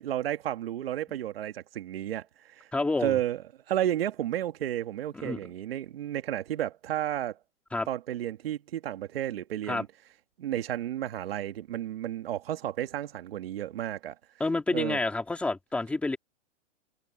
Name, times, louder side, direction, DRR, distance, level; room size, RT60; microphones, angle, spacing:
voice 1, 0.0-2.3 2.6-2.7 3.0-3.4 3.7-7.4 7.9-9.9 10.4-14.2 14.7-15.0, right 12 dB, 50° right, 2.2 m, -32 dB
voice 2, 2.7-3.2 5.1-5.4 7.7-7.9 9.7-9.8 14.4-16.2, left 2 dB, 5° left, 2.1 m, -29 dB
hypercardioid pair, 170°, 38 cm